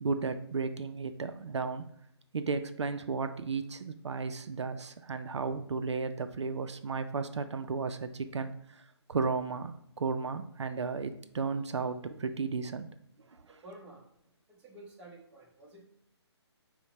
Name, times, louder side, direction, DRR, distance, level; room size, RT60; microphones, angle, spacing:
voice 1, 0.0-1.9 2.3-12.9 13.5-13.6, right 4 dB, 80° right, 9 dB, 0.4 m, -34 dB
voice 2, 13.5-14.0 14.5-15.9, right 1 dB, 10° right, -3 dB, 0.9 m, -51 dB
5.6 x 2.2 x 4.1 m, 0.71 s
figure-of-eight pair, 145°, 15 cm